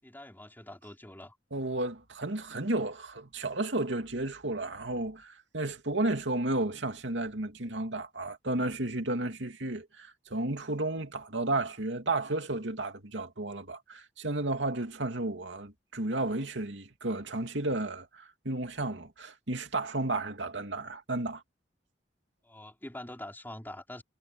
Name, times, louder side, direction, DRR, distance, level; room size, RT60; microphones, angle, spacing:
voice 1, 0.0-1.4 22.4-24.0, left 1 dB, 10° left, 3.6 m, -44 dB
voice 2, 1.5-21.4, right 2 dB, 80° right, 2.7 m, -33 dB
head